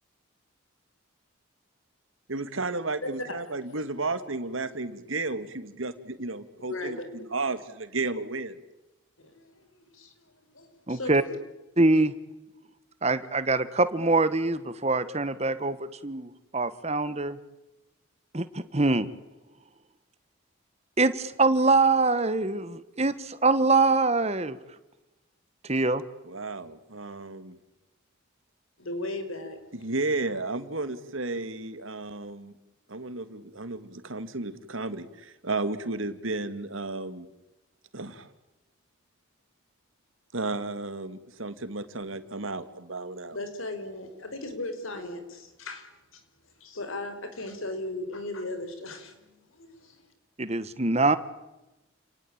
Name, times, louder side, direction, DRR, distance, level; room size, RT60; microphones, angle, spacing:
voice 1, 2.3-7.0 7.3-8.6 26.3-27.6 29.7-32.5 32.9-37.3 37.9-38.3 40.3-43.4, right 3 dB, 75° right, 12 dB, 2.1 m, -33 dB
voice 2, 6.7-7.0 9.2-11.3 11.8-12.0 28.8-29.6 43.3-45.9 46.1-46.2 46.6-50.1, left 2 dB, 80° left, 9 dB, 4.7 m, -37 dB
voice 3, 10.9-11.2 11.8-12.1 13.0-15.8 16.0-17.4 18.3-19.1 21.0-24.6 25.7-26.0 50.4-51.2, right 3 dB, 30° right, 13 dB, 1.4 m, -24 dB
29.5 x 18.5 x 8.8 m, 1.0 s
head